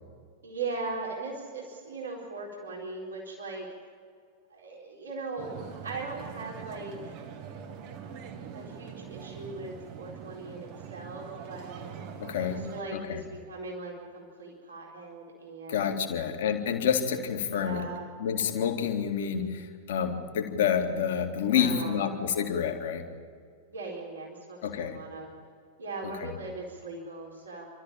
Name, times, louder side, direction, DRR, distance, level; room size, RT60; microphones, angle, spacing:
voice 1, 0.4-3.7 4.5-7.1 8.5-11.8 12.4-16.0 17.5-18.1 21.4-22.2 23.7-25.3 25.8-27.7, right 3 dB, 70° right, -2 dB, 4.2 m, -39 dB
sound 1, 5.4-12.8, right 7 dB, 45° right, 2.0 m, -43 dB
voice 2, 12.2-12.6 12.9-13.2 15.7-17.8 18.2-23.1 24.6-25.0 26.0-26.3, left 8 dB, 55° left, 3 dB, 2.4 m, -28 dB
28.0 x 13.5 x 8.9 m, 2.1 s
figure-of-eight pair, 90°, 0 cm